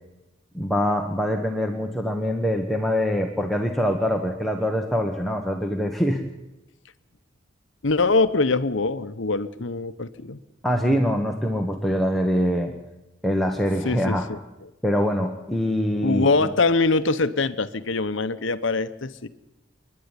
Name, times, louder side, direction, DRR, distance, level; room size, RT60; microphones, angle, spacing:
voice 1, 0.5-6.2 10.6-12.7 13.2-14.2 14.8-16.5, equal, ahead, 2 dB, 1.4 m, -24 dB
voice 2, 7.8-10.4 13.8-14.7 16.0-19.3, left 3 dB, 70° left, 12 dB, 1.0 m, -23 dB
28.5 x 11.0 x 9.9 m, 0.98 s
head